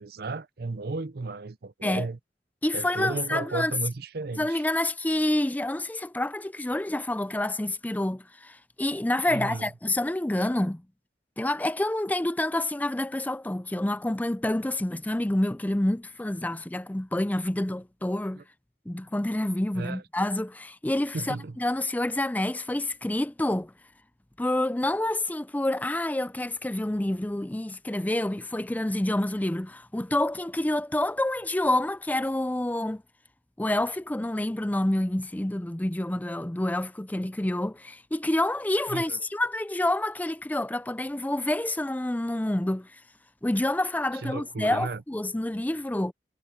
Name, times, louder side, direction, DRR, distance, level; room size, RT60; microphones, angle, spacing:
voice 1, 0.0-2.2 2.7-4.6 9.3-9.7 18.4-18.5 19.7-20.0 21.1-21.6 38.9-39.2 44.2-45.0, right 3 dB, 60° right, 0.6 m, -34 dB
voice 2, 2.6-3.7 4.4-10.8 11.4-18.4 18.9-23.7 24.4-33.0 33.6-43.0 43.4-46.1, left 1 dB, 10° left, 0.5 m, -28 dB
head